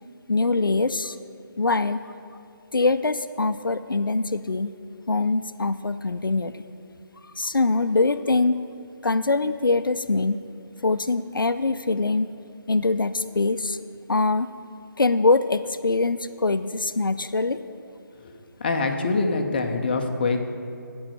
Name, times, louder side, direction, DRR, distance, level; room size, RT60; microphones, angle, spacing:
voice 1, 0.3-1.2 1.6-2.0 2.7-4.8 5.1-6.6 7.4-8.6 9.0-10.4 10.8-12.3 12.7-13.8 14.1-14.5 15.0-17.6, left 3 dB, 80° left, 12 dB, 0.4 m, -23 dB
voice 2, 18.2-20.4, left 3 dB, 25° left, 5 dB, 0.6 m, -25 dB
9.8 x 5.4 x 7.7 m, 2.6 s
figure-of-eight pair, 155°, 11 cm